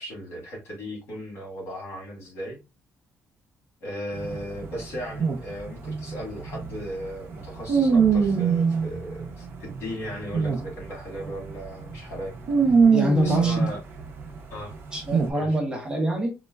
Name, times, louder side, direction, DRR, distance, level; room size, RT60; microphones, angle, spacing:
voice 1, 0.0-2.6 3.8-12.4 12.6-12.7 13.2-13.8 14.5-14.8 15.3-15.6, equal, 60° left, -1 dB, 1.6 m, -36 dB
sound 1, 4.1-10.8 11.2-11.5 11.8-14.4 15.0-15.3, right 5 dB, 50° right, 0.6 m, -23 dB
voice 2, 12.9-13.7 14.9-16.3, equal, 15° right, 1 dB, 0.9 m, -25 dB
4.4 x 2.1 x 2.2 m, 0.26 s
cardioid pair, 145°, 5 cm